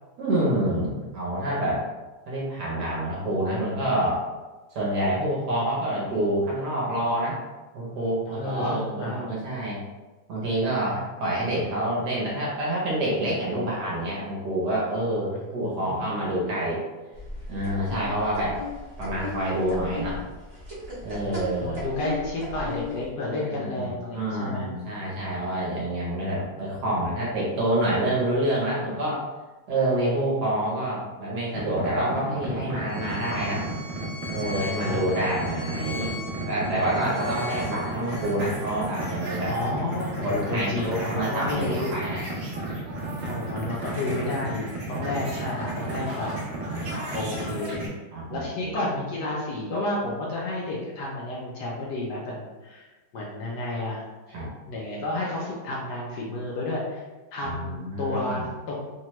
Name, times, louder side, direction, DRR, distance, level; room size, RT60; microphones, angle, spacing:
voice 1, 0.2-1.8 2.3-4.2 4.7-7.4 7.7-9.8 10.3-16.8 17.5-18.6 19.0-20.2 21.0-21.8 23.5-29.2 29.7-33.6 34.3-36.1 36.4-39.5 40.2-42.2 43.1-43.3 46.7-47.2 48.1-48.7 54.3-54.5 57.4-58.5, right 1 dB, 65° right, -5 dB, 1.2 m, -27 dB
voice 2, 8.3-9.3 15.3-16.1 21.2-24.7 33.3-33.4 34.8-35.3 39.5-41.9 43.2-46.3 47.1-47.9 48.3-52.8 53.1-54.0 54.7-57.0 57.3-59.0, left 2 dB, 70° left, -4 dB, 1.0 m, -31 dB
sound 1, 17.1-23.1, left 2 dB, 30° right, 0.7 m, -36 dB
sound 2, 31.5-47.9, right 1 dB, 85° right, 0.6 m, -33 dB
Bowed string instrument, 32.9-38.3, left 2 dB, 45° left, 0.5 m, -40 dB
3.2 x 2.2 x 2.9 m, 1.2 s
omnidirectional pair, 2.1 m